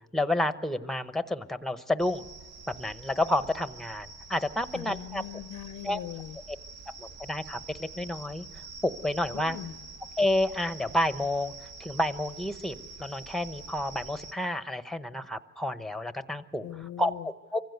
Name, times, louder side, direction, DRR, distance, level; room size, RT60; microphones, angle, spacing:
voice 1, 0.1-2.2 2.8-5.2 5.8-6.0 7.0-8.4 8.8-9.6 10.2-11.5 11.8-16.6 17.0-17.6, left 1 dB, ahead, 12 dB, 0.9 m, -30 dB
sound 1, 2.0-14.3, right 4 dB, 60° right, 1.1 m, -46 dB
voice 2, 4.7-6.4 9.3-9.8 16.6-17.3, left 11 dB, 85° left, 13 dB, 0.7 m, -40 dB
24.5 x 16.0 x 8.0 m, 1.4 s
cardioid pair, 90°, 30 cm